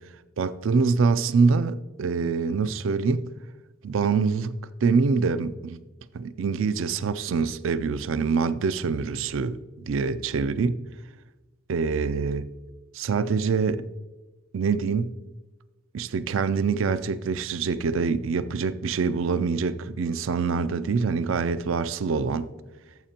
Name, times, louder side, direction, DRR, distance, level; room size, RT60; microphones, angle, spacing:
voice 1, 0.4-3.2 3.8-5.8 6.1-9.6 9.9-10.8 11.7-12.5 12.9-13.8 14.5-15.1 15.9-22.5, right 5 dB, 75° right, 0.4 m, -25 dB
14.0 x 7.3 x 2.9 m
head